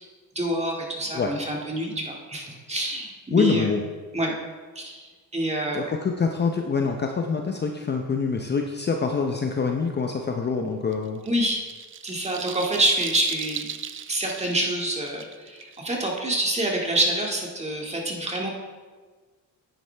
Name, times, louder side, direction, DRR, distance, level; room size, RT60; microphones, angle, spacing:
voice 1, 0.4-3.7 4.1-4.3 4.8-5.9 11.2-11.6 12.0-13.6 14.1-18.5, right 1 dB, 15° right, -1 dB, 2.0 m, -27 dB
voice 2, 3.3-3.8 5.7-11.2, left 5 dB, 25° left, 3 dB, 0.7 m, -25 dB
sound 1, 10.9-16.7, right 8 dB, 35° right, 0.5 m, -37 dB
10.0 x 9.5 x 3.4 m, 1.4 s
cardioid pair, 110°, 39 cm